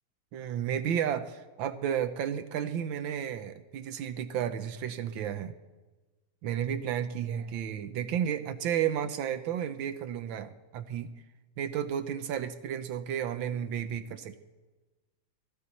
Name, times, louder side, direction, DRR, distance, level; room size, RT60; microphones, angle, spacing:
voice 1, 0.3-5.5 6.4-11.1 11.6-14.4, right 9 dB, 70° right, 10 dB, 1.4 m, -32 dB
22.5 x 15.0 x 4.1 m, 1.2 s
omnidirectional pair, 2.3 m